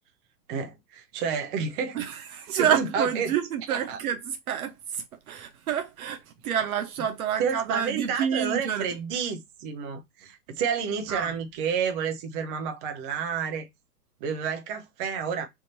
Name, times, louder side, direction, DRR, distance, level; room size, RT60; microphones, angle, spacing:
voice 1, 0.5-2.0 2.5-3.3 3.7-4.0 7.4-13.7 14.2-15.5, right 6 dB, 30° right, 0.9 m, -30 dB
voice 2, 1.9-8.8 11.1-11.3, right 9 dB, 60° right, 0.8 m, -28 dB
3.6 x 2.8 x 4.2 m
hypercardioid pair, 140°, 50 cm